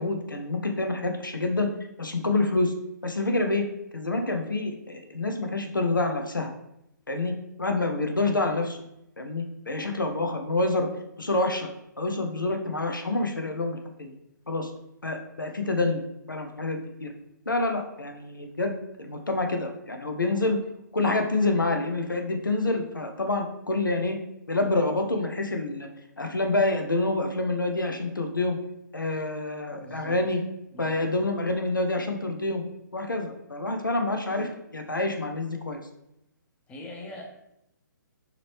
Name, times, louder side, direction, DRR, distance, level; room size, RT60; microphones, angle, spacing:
voice 1, 0.0-1.7 2.0-2.7 3.0-3.7 3.9-6.5 7.1-8.8 9.2-10.9 11.2-11.7 12.0-14.1 14.5-14.7 15.0-16.0 16.3-17.1 17.5-20.6 20.9-24.2 24.5-25.9 26.2-28.6 28.9-30.4 30.8-32.6 32.9-35.8, left 2 dB, 85° left, 4 dB, 0.6 m, -27 dB
voice 2, 29.7-30.2 30.7-31.1 36.7-37.2, left 1 dB, 10° left, 0 dB, 0.7 m, -42 dB
4.8 x 3.0 x 3.2 m, 0.82 s
figure-of-eight pair, 130°, 11 cm